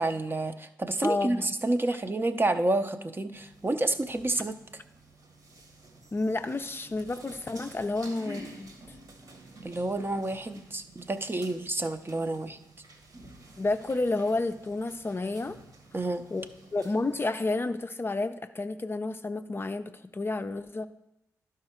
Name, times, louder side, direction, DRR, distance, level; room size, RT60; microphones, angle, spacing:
voice 1, 0.0-4.5 9.6-12.6 15.9-16.2, right 2 dB, 30° right, 9 dB, 0.7 m, -29 dB
voice 2, 1.0-1.5 6.1-8.7 13.6-15.6 16.3-16.5 16.7-20.9, left 2 dB, 30° left, 8 dB, 0.5 m, -30 dB
sound 1, 3.3-17.2, right 1 dB, 60° right, 1.5 m, -51 dB
11.5 x 4.9 x 4.4 m, 0.89 s
hypercardioid pair, 40°, 7 cm